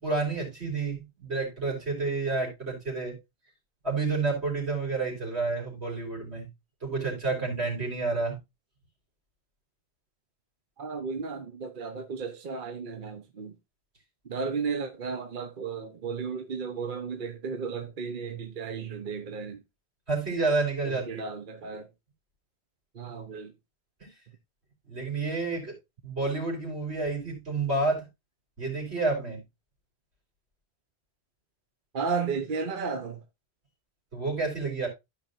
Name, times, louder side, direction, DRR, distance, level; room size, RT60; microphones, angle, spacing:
voice 1, 0.0-3.2 3.8-6.5 6.8-8.4 20.1-21.2 24.0-24.1 24.9-25.7 26.0-28.1 28.6-29.4 34.1-34.9, right 3 dB, 85° right, 4.3 m, -29 dB
voice 2, 10.8-13.5 14.2-19.6 20.9-21.9 22.9-23.5 31.9-33.2, right 5 dB, 55° right, 0.9 m, -34 dB
13.5 x 5.2 x 2.5 m
omnidirectional pair, 1.1 m